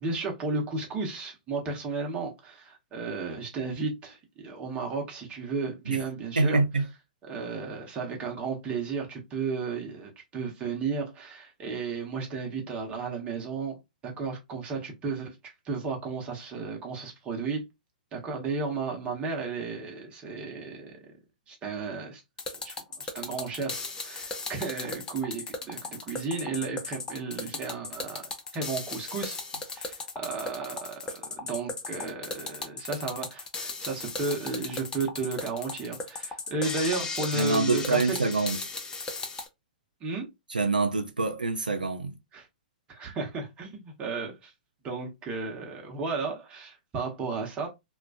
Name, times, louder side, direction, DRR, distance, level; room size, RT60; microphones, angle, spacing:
voice 1, 0.0-6.6 7.2-15.4 15.6-17.6 18.1-21.0 21.5-22.2 22.6-29.4 29.7-31.1 31.4-38.2 40.0-40.3 42.3-42.5 42.9-44.5 44.8-47.7, right 4 dB, 25° right, 0.9 m, -33 dB
voice 2, 6.4-6.9 37.3-38.6 40.5-42.1, right 3 dB, 90° right, 0.4 m, -25 dB
sound 1, 22.4-39.5, left 3 dB, 15° left, 0.5 m, -36 dB
2.4 x 2.2 x 2.4 m
figure-of-eight pair, 110°, 5 cm